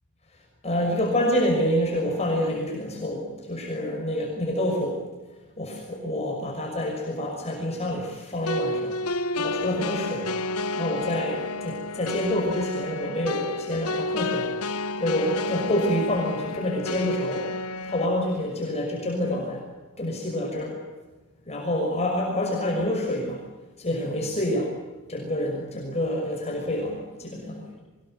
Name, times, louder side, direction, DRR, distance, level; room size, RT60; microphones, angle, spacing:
voice 1, 0.3-5.0 5.6-9.0 9.4-10.3 10.8-14.5 15.0-17.5 17.8-19.7 20.0-20.8 21.5-23.4 23.8-24.8 25.1-27.8, left 1 dB, 30° left, -1 dB, 6.1 m, -27 dB
sound 1, 8.5-18.1, left 2 dB, 80° left, 1.1 m, -30 dB
24.5 x 21.0 x 9.2 m, 1.3 s
head